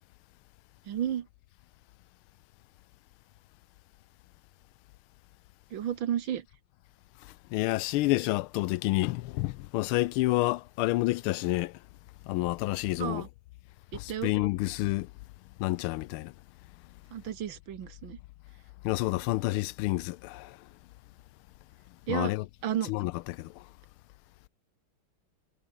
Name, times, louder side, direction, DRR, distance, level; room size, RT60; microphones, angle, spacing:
voice 1, 0.9-1.3 5.7-6.5 13.0-13.3 13.9-14.3 17.1-18.2 22.1-22.3 22.6-22.9, right 10 dB, 65° right, 1.8 m, -32 dB
voice 2, 7.5-11.7 12.3-13.2 13.9-15.1 15.6-16.3 18.8-20.6 22.1-22.4 22.9-23.5, left 18 dB, 80° left, 1.4 m, -29 dB
omnidirectional pair, 2.4 m